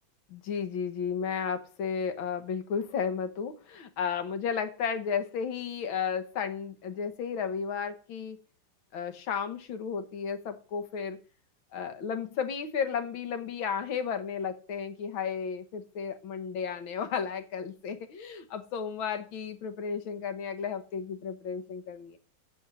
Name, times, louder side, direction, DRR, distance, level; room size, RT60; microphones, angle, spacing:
voice 1, 0.3-8.4 8.9-11.2 11.7-22.2, left 6 dB, 80° left, 1.8 m, -33 dB
8.2 x 7.8 x 6.1 m
omnidirectional pair, 2.2 m